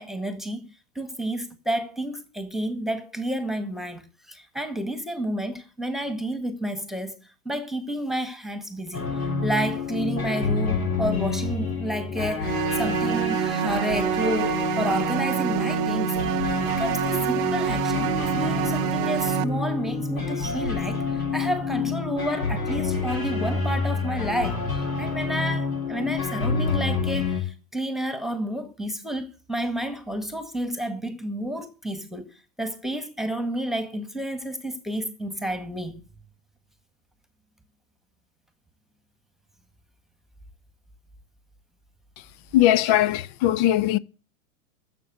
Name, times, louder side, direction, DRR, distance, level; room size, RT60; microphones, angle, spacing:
voice 1, 0.0-16.4 16.6-36.0, right 1 dB, ahead, 1.8 m, -30 dB
sound 1, 8.9-27.4, left 4 dB, 80° left, 6.6 m, -28 dB
sound 2, 12.4-19.4, right 19 dB, 40° right, 0.6 m, -27 dB
voice 2, 42.5-44.0, left 13 dB, 35° left, 0.6 m, -20 dB
12.5 x 7.4 x 9.1 m
hypercardioid pair, 105°, 42 cm